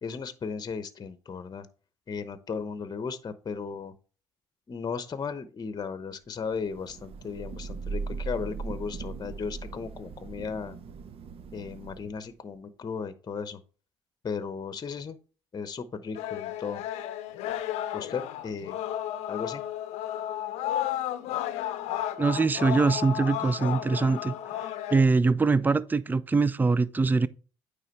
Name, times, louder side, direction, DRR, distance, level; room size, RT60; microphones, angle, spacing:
voice 1, 0.0-1.7 2.1-3.9 4.7-10.8 11.5-13.6 14.2-15.2 15.5-16.8 17.9-18.7 19.3-19.6, left 5 dB, 40° left, 0.9 m, -35 dB
Thunder / Rain, 6.5-12.3, right 4 dB, 60° right, 0.7 m, -39 dB
sound 1, 16.1-25.0, left 12 dB, 80° left, 0.6 m, -33 dB
voice 2, 22.2-24.4 24.9-27.3, right 4 dB, 15° right, 0.4 m, -23 dB
9.1 x 3.4 x 4.5 m
supercardioid pair, 60°, 11 cm